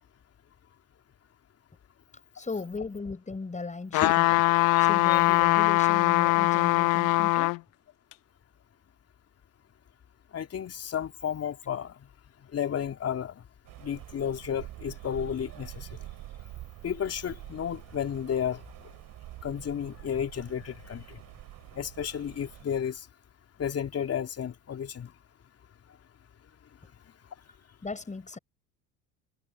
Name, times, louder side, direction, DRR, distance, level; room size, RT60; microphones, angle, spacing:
voice 1, 2.3-4.4 4.8-7.6 27.8-28.4, left 3 dB, 20° left, 5.8 m, -37 dB
sound 1, 3.9-7.6 8.1-8.2, left 25 dB, 55° left, 0.7 m, -22 dB
voice 2, 10.3-11.9 12.5-13.4 13.8-15.9 16.8-18.6 19.4-21.2 21.7-23.0 23.6-25.1, left 8 dB, 40° left, 3.1 m, -32 dB
Rain, 13.7-22.6, right 15 dB, 55° right, 2.6 m, -46 dB
hypercardioid pair, 75°, 40 cm